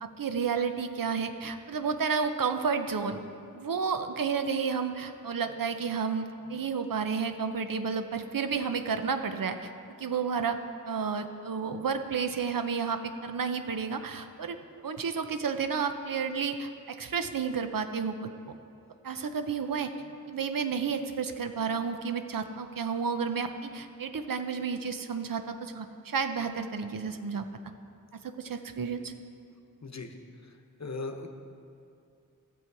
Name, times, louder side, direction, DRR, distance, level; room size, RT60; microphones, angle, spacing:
voice 1, 0.0-3.2 3.5-9.7 10.0-10.6 10.9-14.6 14.8-18.3 19.0-19.9 20.3-27.5 28.2-29.1, right 6 dB, 90° right, 8 dB, 0.6 m, -31 dB
voice 2, 29.8-30.2 30.8-31.3, left 3 dB, 55° left, 5 dB, 0.9 m, -37 dB
13.5 x 7.3 x 4.7 m, 2.5 s
wide cardioid pair, 60°, 33 cm